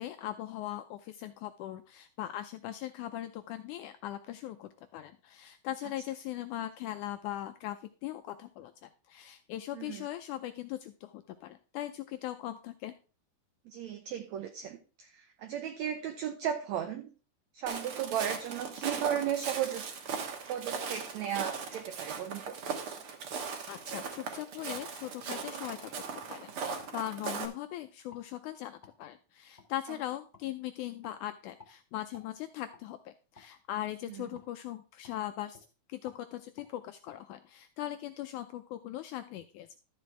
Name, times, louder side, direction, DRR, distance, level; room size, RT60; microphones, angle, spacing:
voice 1, 0.0-12.9 23.7-39.8, left 13 dB, 85° left, 9 dB, 1.7 m, -40 dB
voice 2, 13.7-17.1 17.5-19.8 20.5-22.6, right 9 dB, 75° right, 6 dB, 1.7 m, -35 dB
Walk footsteps, 17.7-27.5, right 5 dB, 60° right, 1.5 m, -38 dB
sound 1, 25.6-25.8 26.2-26.4 26.8-27.5 28.1-28.3 28.8-29.0 29.6-29.7 30.3-30.5 31.0-31.2 31.6-31.8 32.1-32.3 32.7-32.9 33.3-33.5 34.3-34.5 35.0-35.2 35.5-35.7 36.0-36.2 36.6-36.7 37.1-37.2, left 4 dB, 15° left, 1.9 m, -56 dB
12.5 x 7.6 x 3.3 m, 0.36 s
omnidirectional pair, 4.1 m